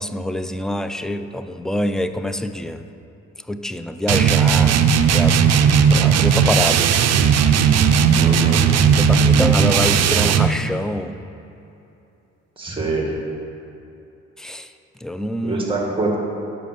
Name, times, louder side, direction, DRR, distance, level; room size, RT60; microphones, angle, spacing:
voice 1, 0.0-2.8 3.5-5.5 5.9-6.9 9.0-11.2 14.4-14.7 15.0-15.6, left 1 dB, ahead, 10 dB, 0.3 m, -25 dB
sound 1, 4.1-10.6, right 7 dB, 60° right, 0.5 m, -16 dB
voice 2, 8.2-8.6 12.6-13.1 15.4-16.2, right 3 dB, 15° right, -1 dB, 1.9 m, -24 dB
7.6 x 5.6 x 6.7 m, 2.8 s
cardioid pair, 90°, 30 cm